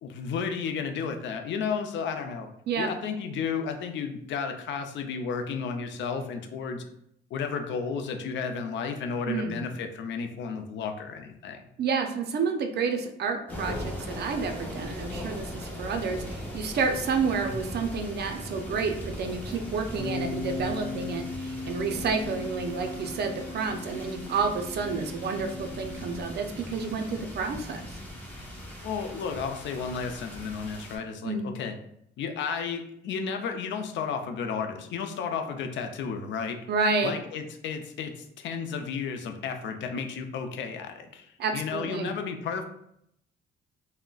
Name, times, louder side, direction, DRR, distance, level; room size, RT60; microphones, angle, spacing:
voice 1, 0.0-2.5 2.8-6.8 7.3-11.6 28.8-31.8 32.2-36.6 37.0-42.6, left 6 dB, 70° left, 6 dB, 0.5 m, -33 dB
voice 2, 9.3-9.6 11.8-27.8 31.2-31.5 36.7-37.1 41.4-42.1, right 4 dB, 55° right, 5 dB, 0.5 m, -30 dB
sound 1, 13.5-31.0, equal, 10° left, 0.9 m, -39 dB
Bass guitar, 20.0-26.2, left 2 dB, 10° right, 0.5 m, -38 dB
3.6 x 2.1 x 2.3 m, 0.74 s
cardioid pair, 90°, 20 cm